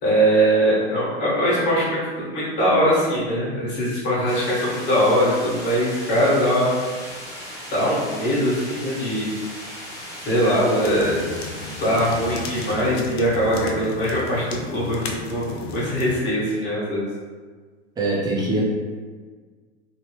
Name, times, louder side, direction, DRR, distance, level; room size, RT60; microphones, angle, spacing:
voice 1, 0.0-6.7 7.7-9.3 10.2-11.2 11.8-17.1, equal, 30° left, -8 dB, 1.4 m, -21 dB
sound 1, 4.3-12.8, equal, 10° left, 0.8 m, -37 dB
sound 2, 10.8-16.2, left 4 dB, 60° left, 0.5 m, -35 dB
voice 2, 18.0-18.6, right 2 dB, 10° right, -5 dB, 0.5 m, -22 dB
3.0 x 2.0 x 3.1 m, 1.5 s
hypercardioid pair, 120°, 34 cm